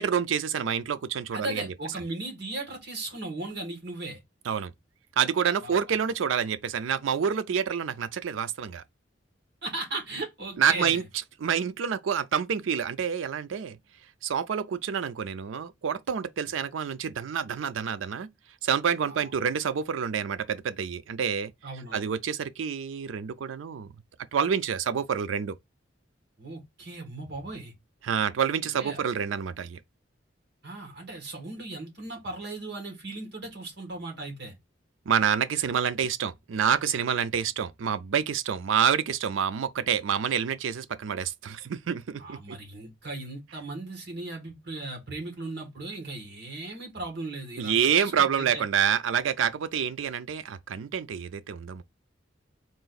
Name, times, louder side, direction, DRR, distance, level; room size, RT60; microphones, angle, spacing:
voice 1, 0.0-1.7 4.5-4.7 5.2-8.8 10.6-11.0 11.4-13.8 14.2-18.3 18.6-21.5 21.9-23.9 24.3-25.6 28.0-29.8 35.1-42.6 47.6-51.8, right 7 dB, 90° right, 0.4 m, -27 dB
voice 2, 1.3-4.2 5.6-5.7 9.6-11.0 19.1-19.3 21.6-22.0 26.4-27.7 28.8-29.0 30.6-34.5 42.2-48.6, right 2 dB, 60° right, 1.6 m, -37 dB
3.8 x 2.5 x 3.9 m
head